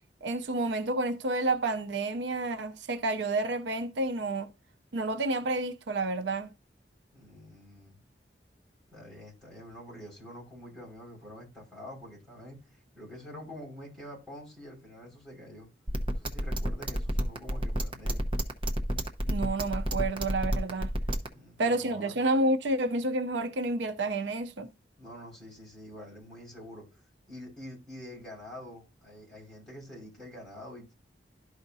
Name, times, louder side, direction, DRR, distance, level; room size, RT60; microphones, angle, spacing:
voice 1, 0.2-4.5 4.9-6.5 19.3-20.9 21.6-24.7, right 2 dB, 85° right, 0.6 m, -29 dB
voice 2, 7.1-8.0 8.9-15.7 16.1-18.2 21.2-22.2 25.0-27.0 27.3-30.9, left 1 dB, ahead, 5.2 m, -46 dB
sound 1, 15.9-21.3, equal, 30° right, 0.9 m, -29 dB
12.5 x 4.9 x 2.7 m
head